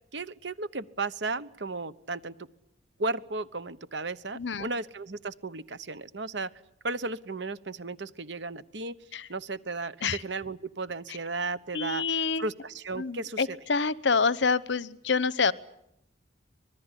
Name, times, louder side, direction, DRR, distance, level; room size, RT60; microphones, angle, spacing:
voice 1, 0.1-2.3 3.0-6.5 6.8-9.0 9.3-12.0 12.4-13.6, right 3 dB, 70° right, 15 dB, 1.1 m, -34 dB
voice 2, 4.3-4.7 9.1-9.3 10.0-10.2 11.7-12.5 13.0-15.5, left 4 dB, 70° left, 18 dB, 0.9 m, -27 dB
25.5 x 20.0 x 10.0 m, 0.80 s
head